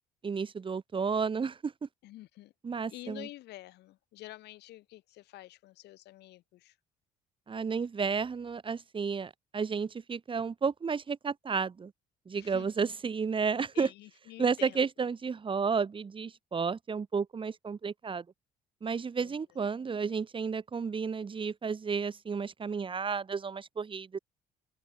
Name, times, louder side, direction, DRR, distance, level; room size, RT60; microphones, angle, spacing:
voice 1, 0.2-1.9 2.6-3.3 7.5-11.9 12.3-13.9 14.4-18.2 18.8-24.2, right 5 dB, 30° right, 3.1 m, -32 dB
voice 2, 2.0-2.5 2.9-6.8 12.3-12.9 13.7-14.8 19.2-19.4, left 16 dB, 80° left, 7.5 m, -48 dB
cardioid pair, 110°, 17 cm